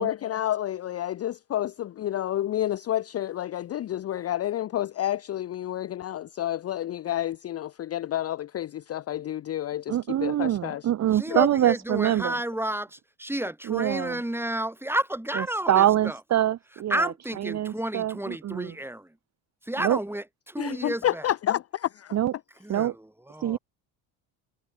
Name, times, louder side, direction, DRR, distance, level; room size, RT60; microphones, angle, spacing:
voice 1, 0.0-10.8 11.3-11.4 20.6-22.2, left 12 dB, 35° left, 0.6 m, -30 dB
voice 2, 9.9-12.4 13.7-14.2 15.4-18.7 19.8-20.0 22.1-22.3 22.7-22.9 23.4-23.6, right 12 dB, 40° right, 0.8 m, -25 dB
voice 3, 11.1-16.2 16.9-19.2 19.6-21.3 22.6-23.6, right 1 dB, 5° right, 5.7 m, -31 dB
supercardioid pair, 75°, 43 cm